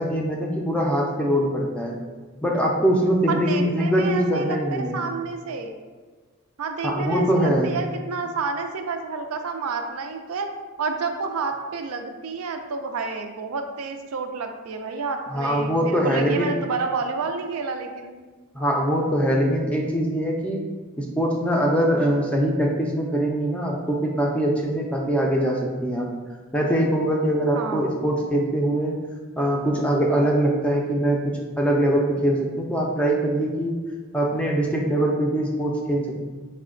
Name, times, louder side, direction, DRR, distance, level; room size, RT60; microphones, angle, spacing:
voice 1, 0.0-2.0 2.4-5.0 6.8-7.7 15.3-16.5 18.5-20.6 21.0-26.1 26.5-28.9 29.4-31.2 31.6-33.7 34.1-36.2, right 1 dB, 5° left, -1 dB, 0.4 m, -22 dB
voice 2, 3.3-4.6 4.9-5.7 6.6-10.5 10.8-18.2 27.5-27.9, right 4 dB, 80° right, 5 dB, 0.4 m, -29 dB
4.7 x 2.1 x 3.7 m, 1.4 s
head